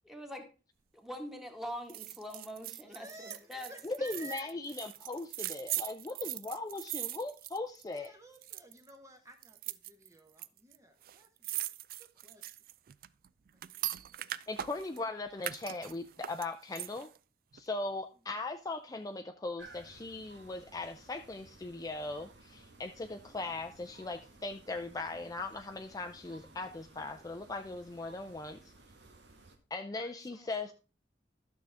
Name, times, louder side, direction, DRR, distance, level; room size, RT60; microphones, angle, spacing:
voice 1, 0.0-0.5 0.9-3.7, equal, ahead, 3 dB, 1.6 m, -43 dB
sound 1, 1.9-8.1 8.3-8.9 9.4-10.5 10.7-10.8 11.0-15.0 15.4-17.2 17.5-17.6, right 14 dB, 55° right, 0.4 m, -40 dB
voice 2, 2.8-4.5 7.9-11.7 12.0-12.7 13.5-13.6 13.9-14.3 29.9-30.7, right 1 dB, 20° right, 5 dB, 0.9 m, -53 dB
voice 3, 3.8-8.1 14.5-17.1 17.5-28.7 29.7-30.7, left 2 dB, 20° left, 6 dB, 0.4 m, -39 dB
sound 2, 19.6-29.6, right 2 dB, 75° right, 1.5 m, -57 dB
12.0 x 6.4 x 3.4 m, 0.34 s
head